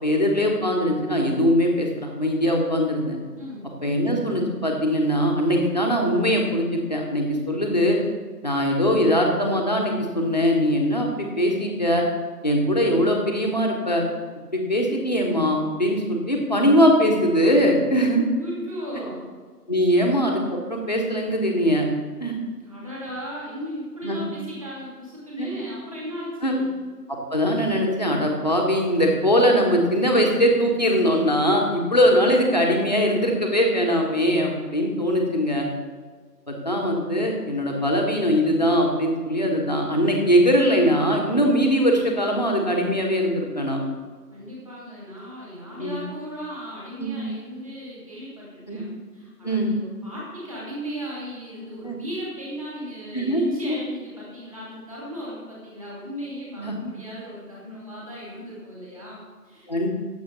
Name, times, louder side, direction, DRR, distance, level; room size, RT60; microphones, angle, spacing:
voice 1, 0.0-3.2 3.8-8.0 8.4-12.0 12.4-14.0 14.5-18.2 19.7-21.8 22.2-22.3 24.0-24.2 25.4-25.5 26.4-26.5 27.3-35.7 36.5-43.8 45.8-46.0 47.0-47.2 48.7-48.8 49.4-49.7 51.8-52.0 53.1-53.8 56.6-56.8 59.7-59.9, equal, 25° left, 0 dB, 1.3 m, -21 dB
voice 2, 3.4-3.7 18.2-19.3 19.9-20.0 22.6-26.8 44.3-59.9, equal, 20° right, -6 dB, 2.6 m, -36 dB
16.0 x 7.3 x 4.0 m, 1.5 s
figure-of-eight pair, 165°, 48 cm